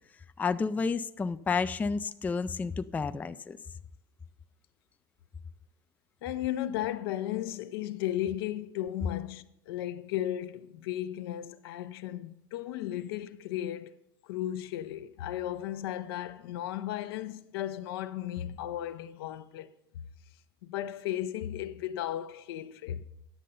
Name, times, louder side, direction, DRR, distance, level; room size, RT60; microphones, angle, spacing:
voice 1, 0.4-3.6, left 5 dB, 10° left, 0.3 m, -30 dB
voice 2, 6.2-13.9 14.2-19.7 20.6-23.0, left 12 dB, 70° left, 0.6 m, -35 dB
10.0 x 7.4 x 5.4 m
hypercardioid pair, 90°, 13 cm